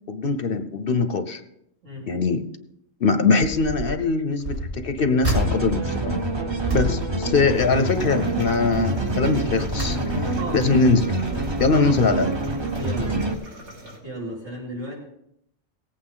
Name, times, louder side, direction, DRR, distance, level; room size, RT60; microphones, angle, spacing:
voice 1, 0.1-1.4 2.1-2.4 3.0-6.1 6.7-10.0 10.2-11.1 11.6-12.3, left 4 dB, 55° left, 10 dB, 0.8 m, -22 dB
voice 2, 1.8-2.2 10.4-10.7 11.7-12.0 12.7-13.2 14.0-15.0, right 1 dB, 80° right, -5 dB, 4.6 m, -34 dB
Rumbling Metal Drawer, 3.4-4.0 4.4-8.1 8.4-8.8 9.3-10.5 11.0-12.0 12.7-12.8 13.1-13.2, right 1 dB, 45° right, 2.7 m, -31 dB
sound 1, 5.3-13.3, right 2 dB, 25° right, 0.8 m, -26 dB
sound 2, 7.5-14.0, equal, 65° right, 3.0 m, -43 dB
18.0 x 8.6 x 3.8 m, 0.76 s
omnidirectional pair, 1.3 m